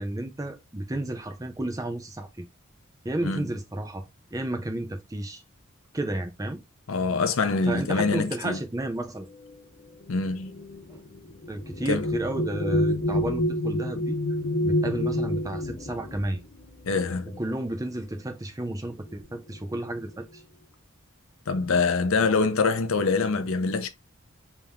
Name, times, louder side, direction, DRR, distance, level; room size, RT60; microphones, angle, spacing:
voice 1, 0.0-2.5 3.0-5.4 5.9-6.6 7.7-9.3 10.9-11.0 11.5-14.2 14.6-16.4 17.4-20.4, right 1 dB, 15° right, 0.6 m, -32 dB
voice 2, 6.9-8.6 10.1-10.5 11.9-12.1 16.9-17.4 21.5-23.9, left 4 dB, 75° left, 0.6 m, -25 dB
sound 1, 9.2-18.2 19.1-19.2 19.6-20.1, left 1 dB, 45° left, 0.7 m, -29 dB
3.5 x 2.9 x 3.5 m
head